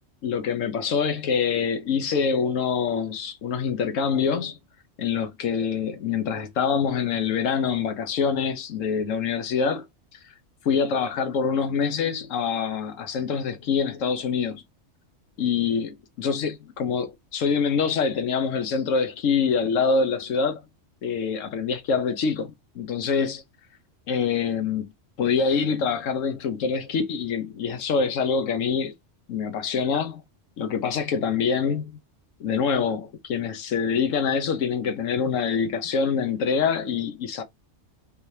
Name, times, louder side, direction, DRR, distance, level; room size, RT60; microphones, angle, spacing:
voice 1, 0.2-4.6 5.0-9.8 10.6-14.6 15.4-20.6 21.0-23.4 24.1-24.8 25.2-28.9 29.3-30.2 30.6-32.0 32.4-37.4, left 6 dB, 85° left, 1.1 m, -25 dB
3.5 x 2.7 x 3.1 m
omnidirectional pair, 1.3 m